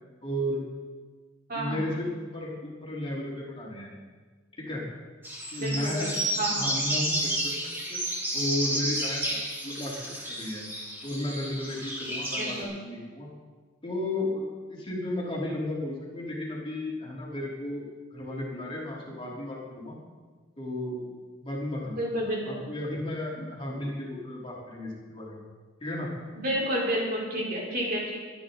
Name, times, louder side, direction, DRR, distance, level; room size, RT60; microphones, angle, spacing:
voice 1, 0.2-0.6 1.5-2.1 2.3-3.9 4.7-4.8 5.5-6.1 6.5-7.5 7.9-8.0 8.3-9.4 9.6-10.6 11.0-12.5 12.8-13.3 13.8-14.4 14.7-17.8 18.1-20.0 20.6-21.1 21.4-25.4 25.8-26.1, left 1 dB, 25° left, -4 dB, 3.5 m, -33 dB
voice 2, 1.5-1.8 5.6-6.7 12.3-12.7 22.0-22.6 26.4-28.2, right 1 dB, 50° right, -3 dB, 4.1 m, -30 dB
sound 1, 5.2-12.6, right 1 dB, 10° right, 4.4 m, -31 dB
25.0 x 10.0 x 3.9 m, 1.4 s
head